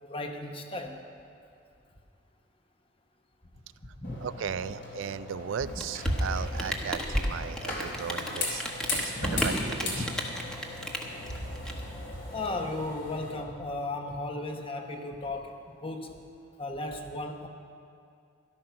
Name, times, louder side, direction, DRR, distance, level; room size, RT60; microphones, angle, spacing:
voice 1, 0.0-1.0 4.0-4.2 8.9-9.2 10.0-10.1 12.3-16.1 16.6-17.5, left 2 dB, 30° left, 4 dB, 1.0 m, -35 dB
sound 1, 4.0-13.3, left 1 dB, 60° left, 3.2 m, -35 dB
voice 2, 4.2-8.6 8.9-10.1, right 7 dB, 80° right, 15 dB, 0.4 m, -36 dB
Rain, 5.6-12.5, equal, 5° left, 1.0 m, -34 dB
13.0 x 12.5 x 5.8 m, 2.5 s
head